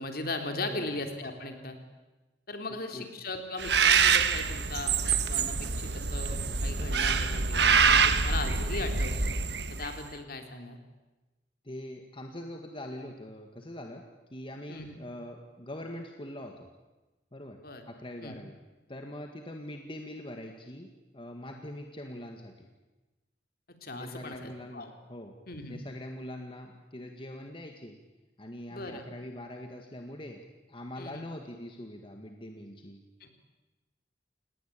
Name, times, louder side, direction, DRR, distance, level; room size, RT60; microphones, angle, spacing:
voice 1, 0.0-1.8 2.5-9.3 9.7-10.8 14.7-14.9 17.6-17.8 18.2-18.4 23.8-24.9 25.5-25.8 28.7-29.0 31.0-31.2 33.2-33.3, left 2 dB, 55° left, 5 dB, 3.4 m, -38 dB
voice 2, 0.6-1.0 2.7-3.1 11.6-14.0 14.3-16.7 17.3-17.6 17.9-18.5 18.9-22.7 24.0-25.3 25.7-28.0 28.4-33.0, left 1 dB, 30° left, 4 dB, 1.9 m, -43 dB
Bird, 3.6-10.0, right 5 dB, 65° right, 1.5 m, -25 dB
29.0 x 19.0 x 8.6 m, 1.1 s
head